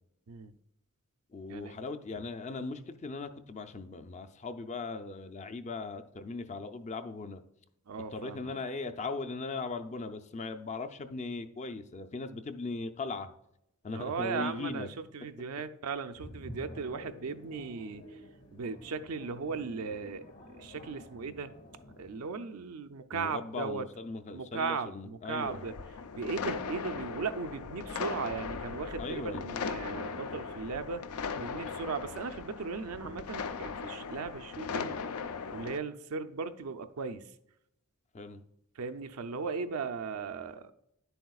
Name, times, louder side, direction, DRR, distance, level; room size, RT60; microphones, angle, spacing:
voice 1, 1.3-7.4 8.1-13.3 13.8-14.9 23.1-25.6 29.0-29.4 38.1-38.4, left 3 dB, 30° left, 0.5 m, -39 dB
voice 2, 7.9-8.5 13.9-14.9 15.1-18.2 18.5-20.2 20.5-21.5 22.0-23.9 24.3-25.7 26.2-31.0 31.4-35.0 35.5-37.3 38.8-40.7, right 5 dB, 80° right, 0.5 m, -37 dB
sound 1, 16.2-22.2, left 1 dB, 55° left, 1.2 m, -49 dB
sound 2, 25.4-35.8, left 5 dB, 85° left, 0.5 m, -38 dB
10.0 x 7.9 x 2.4 m
head